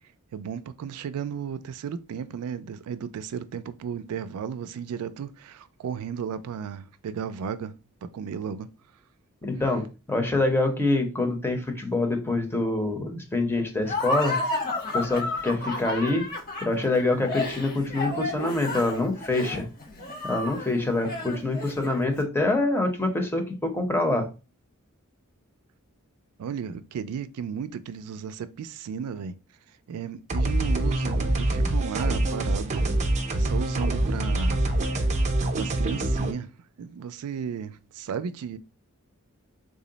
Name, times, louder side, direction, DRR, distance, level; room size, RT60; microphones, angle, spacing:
voice 1, 0.3-7.8 8.0-8.7 26.4-29.4 29.9-32.9 33.3-34.6 35.0-35.1 35.4-36.5 36.8-38.6, right 7 dB, 90° right, 0.3 m, -34 dB
voice 2, 9.4-14.4 14.9-16.2 16.6-19.7 20.2-24.2, left 2 dB, 10° left, 0.6 m, -25 dB
Laughter, 13.8-22.1, left 2 dB, 40° left, 1.0 m, -32 dB
sound 1, 30.3-36.3, right 1 dB, 30° right, 0.5 m, -25 dB
3.7 x 2.0 x 3.8 m
head